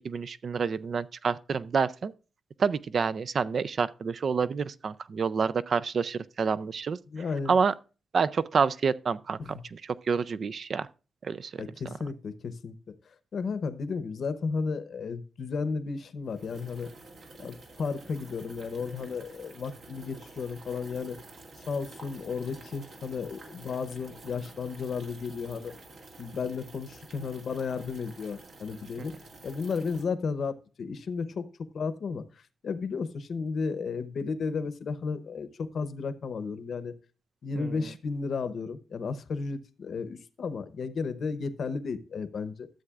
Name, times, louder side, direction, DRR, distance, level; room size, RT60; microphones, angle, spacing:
voice 1, 0.0-2.1 2.6-7.0 7.5-7.7 8.1-10.9 11.2-11.6 37.6-37.8, right 5 dB, 50° right, 0.4 m, -28 dB
voice 2, 7.1-7.6 9.4-9.6 11.6-12.9 13.3-16.9 17.4-21.2 21.7-25.7 26.2-29.1 29.4-32.2 32.6-36.9 37.4-42.7, left 5 dB, 55° left, 0.8 m, -33 dB
sound 1, 16.3-30.0, right 2 dB, 65° right, 2.2 m, -50 dB
13.0 x 7.8 x 2.4 m
wide cardioid pair, 130°, 0 cm